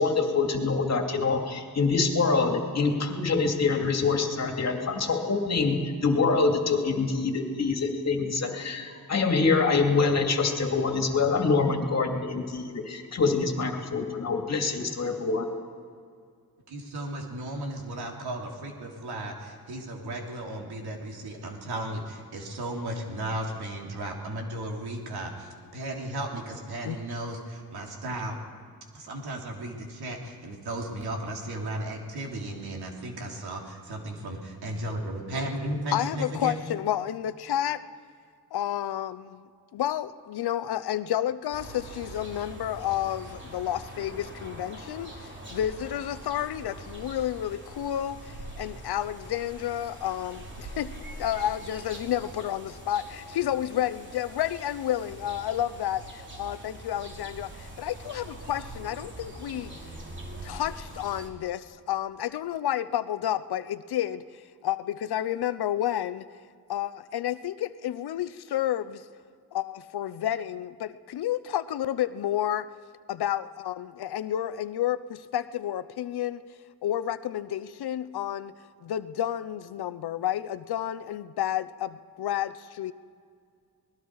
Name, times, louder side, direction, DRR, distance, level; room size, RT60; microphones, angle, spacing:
voice 1, 0.0-15.5, left 4 dB, 45° left, 3 dB, 2.5 m, -25 dB
voice 2, 16.7-28.4 28.9-36.5, right 1 dB, 85° right, 1 dB, 3.3 m, -35 dB
voice 3, 35.9-37.8 38.5-50.9 51.2-59.7 60.4-66.3 66.7-69.0 69.5-72.7 73.1-76.4 76.8-78.5 78.8-82.9, left 11 dB, 85° left, 13 dB, 0.8 m, -30 dB
sound 1, 41.5-61.3, right 1 dB, 30° right, 3.0 m, -43 dB
28.5 x 20.0 x 4.8 m, 2.2 s
wide cardioid pair, 125°, 37 cm